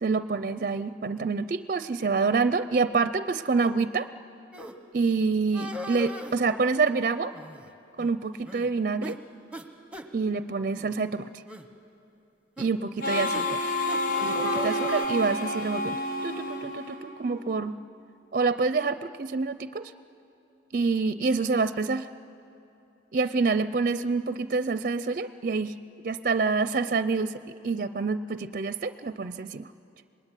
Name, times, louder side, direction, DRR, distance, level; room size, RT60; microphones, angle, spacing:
voice 1, 0.0-4.1 4.9-7.3 8.0-9.2 10.1-11.3 12.6-13.7 14.2-17.8 18.3-19.9 20.7-22.1 23.1-25.7 26.0-29.7, right 4 dB, 50° right, 13 dB, 0.5 m, -27 dB
sound 1, 4.5-4.7 5.5-6.4 7.3-7.7 8.0-8.1 8.5-8.7 9.0-9.2 9.5-9.6 9.9-10.1 10.8-10.9 11.5-11.7 12.6-12.7 13.3-13.4 13.9-15.1, equal, 5° right, 1.2 m, -38 dB
Harmonica, 13.0-17.5, left 1 dB, 80° left, 3.3 m, -29 dB
25.5 x 20.5 x 9.9 m, 2.7 s
head